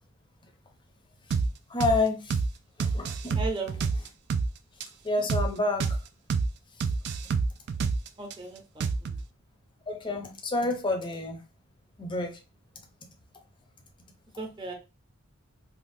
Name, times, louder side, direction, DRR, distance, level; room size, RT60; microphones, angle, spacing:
sound 1, 1.3-1.5 1.8-2.0 2.3-2.5 2.8-4.5 4.8-4.9 5.3-5.5 5.8-6.0 6.3-6.5 6.8-8.3 8.8-9.2, right 4 dB, 50° right, 0.3 m, -27 dB
voice 1, 1.7-2.4 2.8-3.4 5.0-5.9 9.9-11.4 12.0-12.3, left 2 dB, 25° left, 0.7 m, -28 dB
voice 2, 3.3-3.8 8.2-9.1 14.4-14.7, right 3 dB, 20° right, 0.8 m, -36 dB
3.5 x 2.3 x 2.7 m
head